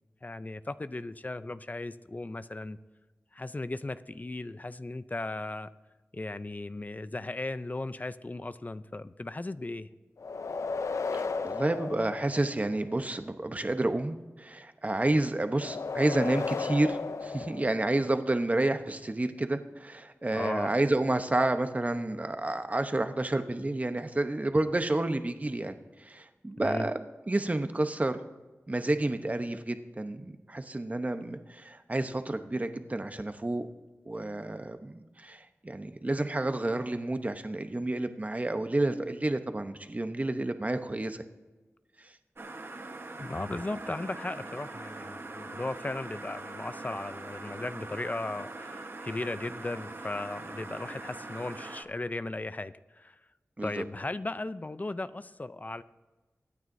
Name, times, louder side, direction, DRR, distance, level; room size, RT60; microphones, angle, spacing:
voice 1, 0.2-2.8 3.3-5.7 6.1-9.9 20.3-20.7 26.6-26.9 43.2-53.2 53.6-55.8, left 2 dB, 30° left, 14 dB, 0.5 m, -36 dB
sound 1, 10.2-12.9 15.5-18.3, left 4 dB, 85° left, 0.5 m, -35 dB
voice 2, 11.1-27.0 27.3-28.2 28.7-33.7 34.1-41.2 42.0-42.1 53.6-53.8, right 2 dB, 30° right, 8 dB, 0.9 m, -30 dB
sound 2, 42.4-51.8, right 2 dB, 50° right, 1.1 m, -42 dB
23.0 x 9.5 x 2.7 m, 1.2 s
wide cardioid pair, 65°, 5 cm